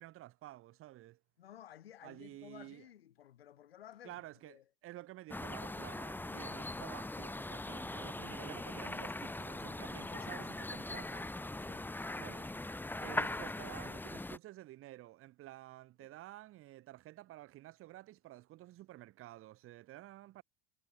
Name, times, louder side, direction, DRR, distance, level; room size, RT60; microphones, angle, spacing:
voice 1, 0.0-1.2 2.0-2.9 4.0-11.3 12.2-12.5 13.0-20.4, right 16 dB, 45° right, 1.8 m, -51 dB
voice 2, 1.4-4.2 4.5-4.6 10.1-10.5 11.6-12.0 16.0-16.1, left 11 dB, 85° left, 6.2 m, -55 dB
sound 1, 5.3-14.4, left 2 dB, 5° left, 1.6 m, -41 dB
hypercardioid pair, 85°, 29 cm